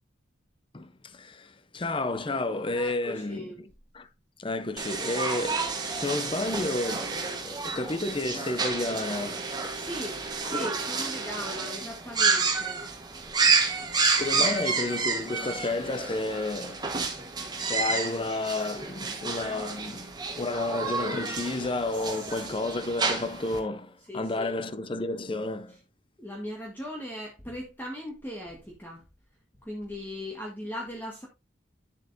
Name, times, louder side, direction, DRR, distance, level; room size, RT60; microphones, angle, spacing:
voice 1, 0.7-3.7 3.9-4.1 4.4-9.9 10.4-10.7 14.2-16.8 17.5-25.8, left 2 dB, 25° left, 0.6 m, -31 dB
voice 2, 2.7-3.5 9.7-12.8 14.4-14.6 21.9-22.4 24.1-24.5 26.2-29.0 29.6-31.3, left 1 dB, 10° left, 1.4 m, -39 dB
sound 1, 4.8-23.6, right 4 dB, 20° right, 1.3 m, -30 dB
10.0 x 7.3 x 2.7 m
head